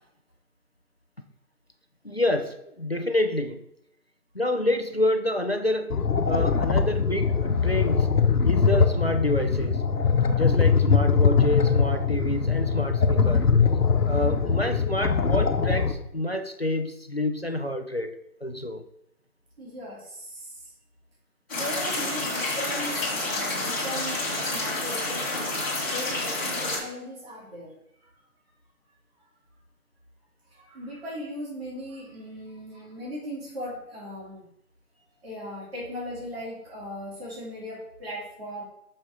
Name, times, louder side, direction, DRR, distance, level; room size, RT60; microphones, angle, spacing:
voice 1, 2.0-3.6 4.3-6.0 6.2-8.1 8.4-9.8 10.3-13.5 14.1-18.8, left 1 dB, 45° left, 7 dB, 0.4 m, -28 dB
sound 1, 5.9-15.9, left 5 dB, 80° left, 1.1 m, -22 dB
voice 2, 19.6-20.6 21.5-25.6 25.8-27.7 30.5-34.5 35.2-38.6, equal, 40° right, -6 dB, 3.0 m, -38 dB
sound 2, 21.5-26.8, left 2 dB, 15° left, 1.9 m, -29 dB
6.6 x 6.2 x 3.9 m, 0.79 s
figure-of-eight pair, 165°, 46 cm